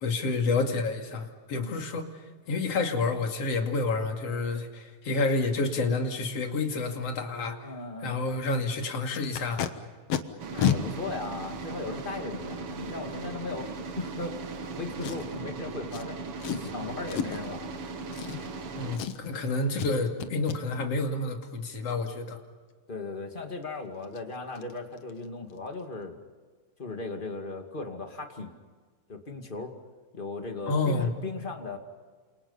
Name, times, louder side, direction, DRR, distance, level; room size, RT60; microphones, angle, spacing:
voice 1, 0.0-2.1 2.5-7.6 8.0-9.6 18.7-22.4 30.7-31.1, left 3 dB, 45° left, 3 dB, 3.2 m, -29 dB
voice 2, 7.6-8.1 10.5-14.4 14.7-16.2 16.5-18.0 22.9-26.2 26.8-28.5 29.1-29.7 30.1-31.8, left 3 dB, 20° left, 4 dB, 1.5 m, -37 dB
Packing tape duct tape, 9.1-9.7 10.1-10.2 10.6-10.8 11.6-11.7 15.0-15.4 15.9-16.0 16.4-16.7 17.1-17.5 18.1-18.7 18.9-19.4 19.8-19.9 20.2-20.6 23.6-23.7 24.0-24.2 24.6-24.7 25.0-25.2 25.5-25.6, left 9 dB, 60° left, 1.7 m, -30 dB
sound 1, 10.4-19.0, right 3 dB, 50° right, 2.0 m, -38 dB
29.0 x 28.0 x 5.7 m, 1.5 s
omnidirectional pair, 4.3 m